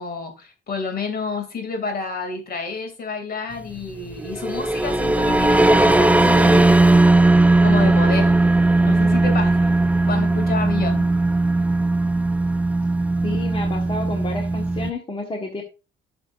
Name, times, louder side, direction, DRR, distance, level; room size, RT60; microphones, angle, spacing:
voice 1, 0.0-7.0 7.6-8.3 8.8-9.7 10.1-11.1, left 4 dB, 50° left, 5 dB, 2.8 m, -29 dB
sound 1, 4.2-14.9, right 2 dB, 5° right, 0.4 m, -17 dB
voice 2, 13.2-15.6, left 2 dB, 25° left, 2 dB, 1.6 m, -30 dB
12.0 x 6.7 x 2.6 m, 0.31 s
cardioid pair, 90°, 20 cm